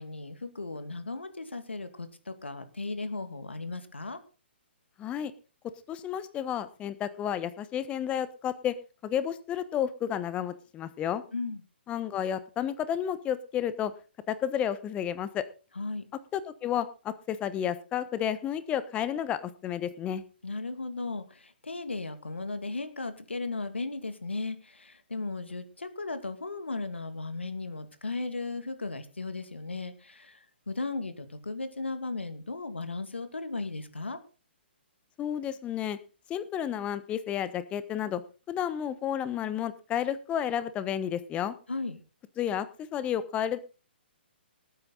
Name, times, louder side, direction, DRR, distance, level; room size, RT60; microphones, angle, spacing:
voice 1, 0.0-4.2 11.3-11.6 15.8-16.0 20.4-30.4 30.7-34.2 41.7-42.0, left 3 dB, 85° left, 10 dB, 2.3 m, -36 dB
voice 2, 5.0-5.3 5.9-8.7 9.0-11.2 11.9-13.9 14.3-15.5 16.3-20.2 35.2-36.0 36.3-38.2 38.5-41.5 42.4-42.7 42.9-43.6, left 9 dB, 20° left, 14 dB, 1.1 m, -31 dB
19.0 x 9.2 x 4.0 m, 0.34 s
figure-of-eight pair, 130°, 6 cm